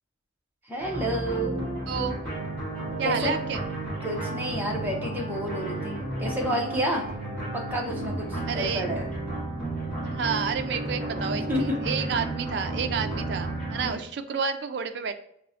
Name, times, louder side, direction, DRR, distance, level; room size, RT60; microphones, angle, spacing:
voice 1, 0.7-1.7 3.0-3.3 4.0-7.1 7.7-9.1 11.5-11.8, equal, 10° right, -1 dB, 0.6 m, -30 dB
sound 1, 0.8-13.9, right 2 dB, 5° left, 1.3 m, -32 dB
voice 2, 1.9-2.2 3.0-3.7 8.5-8.9 10.0-15.1, right 6 dB, 55° right, 8 dB, 0.3 m, -30 dB
5.7 x 2.1 x 2.6 m, 0.72 s
head